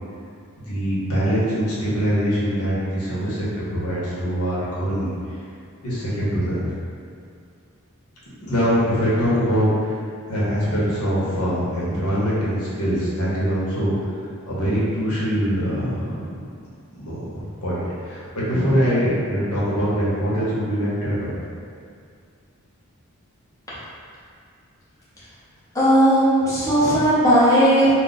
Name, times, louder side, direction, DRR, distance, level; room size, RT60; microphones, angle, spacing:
voice 1, 0.6-5.1 5.8-6.7 8.4-10.0 10.3-16.5 17.0-21.3, equal, 85° left, -8 dB, 1.0 m, -23 dB
voice 2, 25.7-27.9, equal, 15° left, -11 dB, 0.6 m, -16 dB
2.4 x 2.2 x 3.9 m, 2.3 s
head